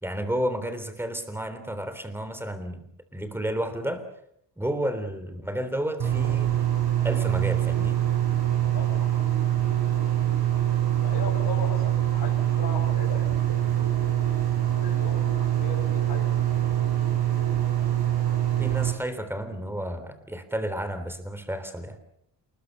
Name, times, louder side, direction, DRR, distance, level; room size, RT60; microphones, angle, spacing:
voice 1, 0.0-4.0 4.6-6.6 7.0-8.0 18.6-22.0, right 1 dB, 5° right, 10 dB, 3.5 m, -31 dB
sound 1, 6.0-18.9, right 12 dB, 60° right, 6.1 m, -24 dB
voice 2, 8.7-9.1 11.0-13.5 14.8-16.5, left 5 dB, 55° left, -2 dB, 5.9 m, -38 dB
28.0 x 21.0 x 6.8 m, 0.70 s
wide cardioid pair, 150°, 43 cm